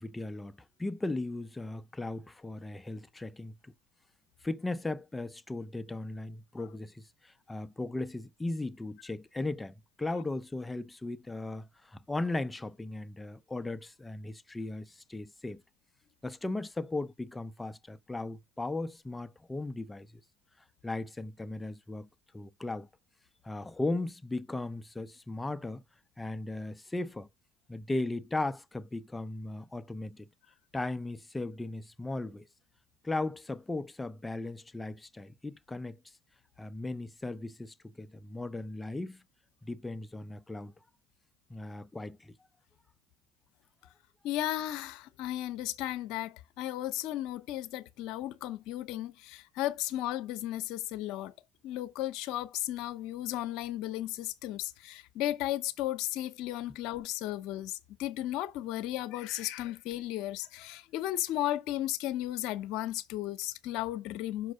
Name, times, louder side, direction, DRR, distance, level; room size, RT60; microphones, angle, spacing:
voice 1, 0.0-3.7 4.4-15.6 16.2-20.1 20.8-22.1 22.3-22.9 23.4-25.8 26.2-27.3 27.7-30.3 30.7-32.5 33.0-36.0 36.6-39.2 39.6-40.7 41.5-42.3, left 2 dB, 15° left, 0.5 m, -37 dB
voice 2, 44.2-51.3 51.6-64.5, left 14 dB, 70° left, 0.7 m, -35 dB
6.2 x 4.6 x 6.4 m
supercardioid pair, 80°, 0 cm